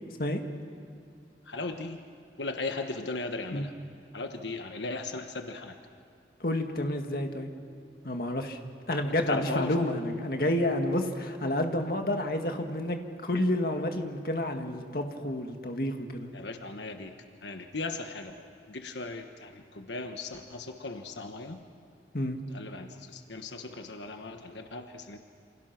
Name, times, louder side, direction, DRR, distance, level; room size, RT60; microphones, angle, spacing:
voice 1, 1.4-2.1 2.4-3.7 4.1-5.8 9.1-9.7 16.3-17.1 17.4-21.6 22.5-25.2, left 3 dB, 90° left, 5 dB, 1.3 m, -37 dB
voice 2, 6.4-7.5 8.0-8.6 8.9-16.3 22.1-22.4, left 1 dB, 55° left, 4 dB, 1.9 m, -30 dB
28.5 x 27.0 x 6.0 m, 2.6 s
head